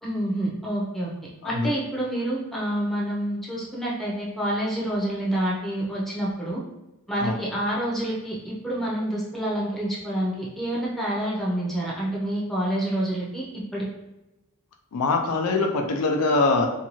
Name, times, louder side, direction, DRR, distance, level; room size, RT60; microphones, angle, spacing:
voice 1, 0.0-1.1 1.4-6.6 7.1-13.4 13.7-13.8, right 1 dB, ahead, -6 dB, 0.6 m, -28 dB
voice 2, 14.9-16.7, left 3 dB, 85° left, 3 dB, 0.4 m, -23 dB
2.6 x 2.2 x 2.9 m, 0.99 s
head